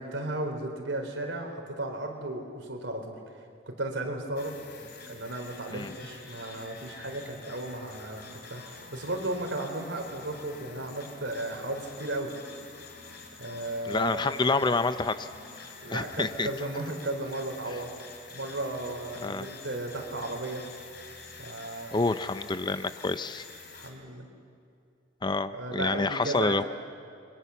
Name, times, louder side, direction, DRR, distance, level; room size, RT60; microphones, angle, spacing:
voice 1, 0.0-4.6 5.1-12.3 13.4-14.3 15.8-17.9 18.3-20.6 21.4-21.9 23.7-24.3 25.5-26.7, right 2 dB, 70° right, 3 dB, 4.2 m, -35 dB
sound 1, 4.4-23.9, left 4 dB, 55° left, 3.5 m, -47 dB
voice 2, 13.9-15.3 15.6-16.5 19.2-19.5 21.9-23.4 25.2-26.6, left 3 dB, 25° left, 12 dB, 0.6 m, -28 dB
29.5 x 22.5 x 7.2 m, 2.5 s
head